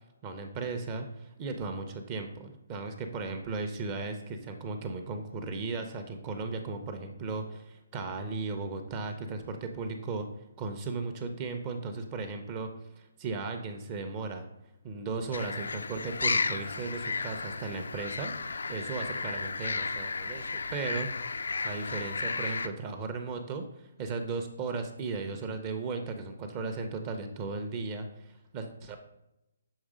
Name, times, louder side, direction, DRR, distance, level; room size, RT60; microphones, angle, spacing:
voice 1, 0.2-10.3 10.6-12.7 13.0-14.5 14.8-21.1 21.6-29.0, right 4 dB, 25° right, 5 dB, 0.5 m, -36 dB
sound 1, 15.3-22.7, left 4 dB, 85° left, 0.4 m, -33 dB
6.3 x 3.3 x 4.9 m, 0.87 s
hypercardioid pair, 165°, 0 cm